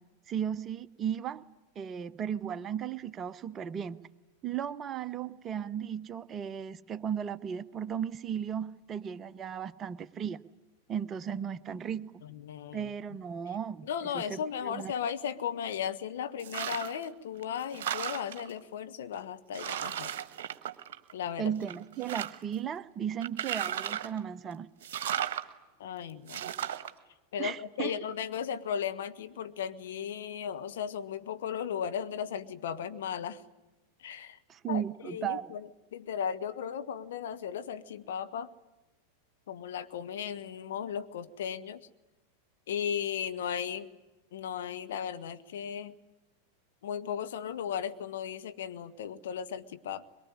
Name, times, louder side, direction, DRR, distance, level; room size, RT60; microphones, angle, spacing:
voice 1, 0.3-1.4 1.8-4.0 4.4-10.4 10.9-12.2 12.7-13.9 14.1-14.9 21.4-24.7 27.4-27.9 34.5-35.5, right 8 dB, 25° right, 15 dB, 0.8 m, -35 dB
voice 2, 12.2-13.2 13.8-20.1 21.1-21.5 25.8-26.4 27.3-33.4 34.0-34.4 34.7-38.5 39.5-41.9 42.7-43.9 44.3-45.9 46.8-50.0, left 8 dB, 60° left, 9 dB, 1.2 m, -36 dB
sound 1, 16.4-17.0 17.4-18.5 19.1-19.2 19.5-21.3 21.6-22.5 23.2-24.2 24.8-25.4 26.3-26.9, right 10 dB, 55° right, 1.3 m, -35 dB
23.0 x 23.0 x 9.9 m, 1.1 s
figure-of-eight pair, 90°, 0 cm